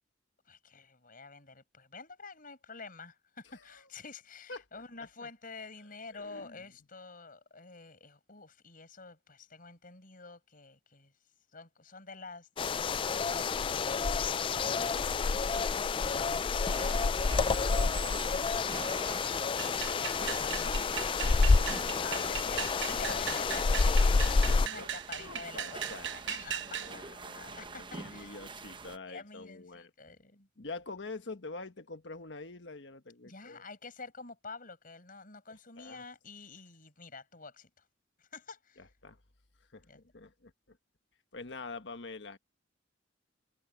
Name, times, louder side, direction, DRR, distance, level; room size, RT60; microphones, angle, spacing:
voice 1, 0.5-11.1 11.5-19.4 20.0-20.8 22.0-28.4 29.1-30.5 33.2-37.8 38.2-38.9 39.8-40.0, left 4 dB, 50° left, 6.0 m, -49 dB
voice 2, 4.5-5.3 6.1-6.6 21.2-22.3 24.3-29.9 30.6-33.6 35.8-36.0 38.8-39.2 39.7-40.8 41.3-42.4, left 3 dB, 70° left, 1.5 m, -46 dB
sound 1, 12.6-24.7, left 4 dB, 30° left, 0.3 m, -29 dB
sound 2, 16.7-29.0, right 4 dB, 25° right, 0.8 m, -46 dB
sound 3, 19.6-26.9, right 10 dB, 70° right, 1.1 m, -39 dB
head